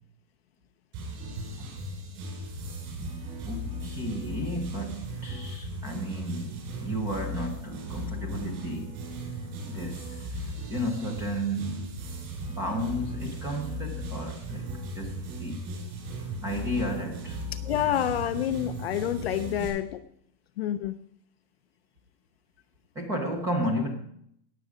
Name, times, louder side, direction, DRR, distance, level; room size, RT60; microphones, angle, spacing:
sound 1, 0.9-19.7, equal, 35° right, 6.6 m, -37 dB
voice 1, 3.4-9.0 9.7-12.0 12.6-15.7 16.4-17.4 23.0-23.9, equal, 5° right, 4 dB, 0.6 m, -33 dB
voice 2, 17.5-20.0 20.6-21.0, left 11 dB, 40° left, 9 dB, 0.5 m, -28 dB
19.0 x 7.7 x 4.9 m, 0.70 s
supercardioid pair, 180°, 49 cm